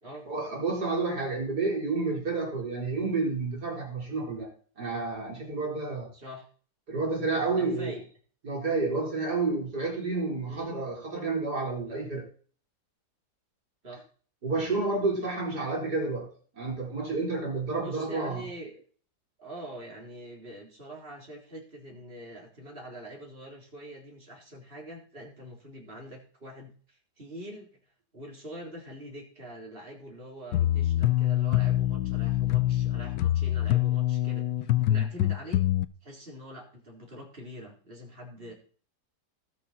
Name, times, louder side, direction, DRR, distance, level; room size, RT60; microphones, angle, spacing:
voice 1, 0.3-6.1 6.9-8.0 8.4-12.3 14.4-18.4, right 3 dB, 70° right, -2 dB, 5.2 m, -30 dB
voice 2, 6.1-6.5 7.5-8.0 10.4-10.8 13.8-14.0 15.2-15.3 17.8-18.7 19.4-27.7 28.1-35.7 36.0-38.5, equal, 35° right, 0 dB, 4.1 m, -44 dB
sound 1, 30.5-35.8, left 13 dB, 90° left, 1.3 m, -25 dB
19.5 x 6.7 x 4.5 m, 0.43 s
omnidirectional pair, 1.8 m